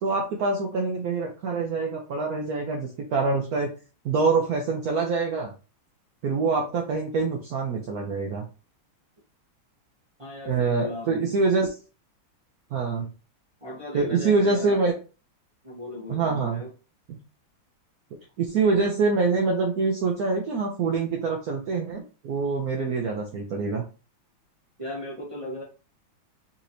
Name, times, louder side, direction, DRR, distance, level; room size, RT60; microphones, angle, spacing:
voice 1, 0.0-3.7 4.0-5.5 6.2-8.4 10.4-11.7 12.7-13.1 13.9-14.9 16.1-16.6 17.1-17.2 18.4-23.8, right 4 dB, 75° right, 1 dB, 0.8 m, -25 dB
voice 2, 10.2-11.3 13.6-14.8 15.6-16.7 24.8-25.6, left 1 dB, 35° right, -5 dB, 0.5 m, -37 dB
4.2 x 2.9 x 2.6 m, 0.33 s
omnidirectional pair, 2.2 m